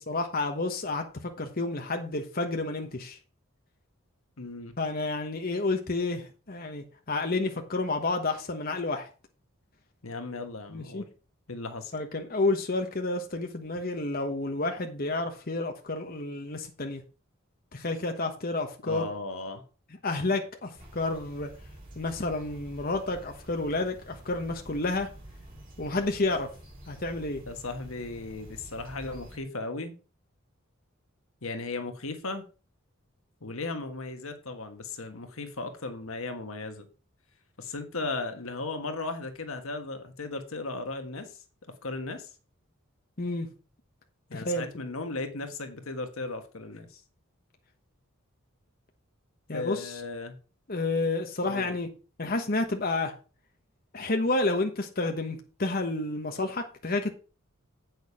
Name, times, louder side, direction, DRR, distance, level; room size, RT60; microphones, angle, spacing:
voice 1, 0.0-3.2 4.8-9.1 10.7-11.0 11.9-17.0 17.7-19.1 20.0-21.5 22.0-25.1 25.8-26.5 26.9-27.4 43.2-43.5 44.3-44.7 49.5-50.0 50.7-51.9 52.2-53.1 53.9-57.1, left 2 dB, 45° left, 1.2 m, -30 dB
voice 2, 4.4-4.7 10.0-11.1 11.5-11.9 18.8-19.6 27.5-29.9 31.4-32.4 33.4-36.9 37.6-41.4 41.8-42.3 44.3-47.0 49.5-50.4 51.4-51.7, left 3 dB, 75° left, 1.4 m, -36 dB
sound 1, 20.8-29.4, right 1 dB, 40° right, 4.2 m, -48 dB
8.4 x 6.4 x 4.9 m
head